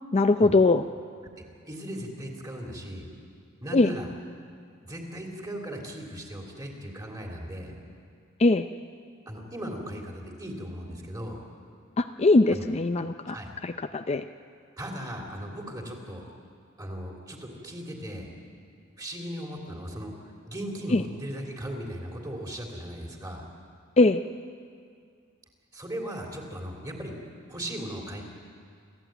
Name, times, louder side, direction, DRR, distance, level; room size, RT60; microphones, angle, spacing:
voice 1, 0.1-0.9 3.7-3.9 8.4-8.7 12.0-13.4 13.6-14.2 20.9-21.0 24.0-24.2, left 2 dB, 30° left, 8 dB, 0.5 m, -21 dB
voice 2, 1.6-3.1 3.6-4.1 4.8-7.7 9.2-11.4 12.5-12.6 13.3-13.5 14.8-16.3 16.8-18.3 19.0-23.4 25.7-27.1 27.5-28.2, equal, 20° right, 1 dB, 3.4 m, -37 dB
28.0 x 14.5 x 9.2 m, 2.2 s
head